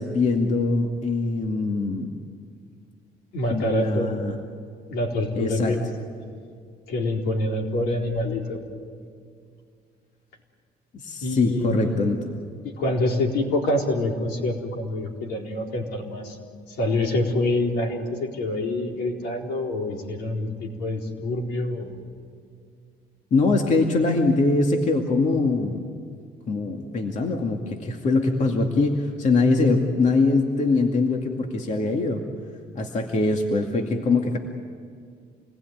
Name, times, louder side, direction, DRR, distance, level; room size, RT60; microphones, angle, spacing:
voice 1, 0.0-2.1 3.5-4.3 5.4-5.8 10.9-12.4 23.3-25.9 26.5-32.2 32.7-34.4, left 3 dB, 45° left, 3 dB, 2.3 m, -23 dB
voice 2, 3.3-4.2 4.9-5.8 6.9-8.6 11.2-11.9 12.6-16.4 16.8-21.9, left 1 dB, 75° left, 1 dB, 4.3 m, -26 dB
28.0 x 20.5 x 9.4 m, 2.2 s
cardioid pair, 110°, 17 cm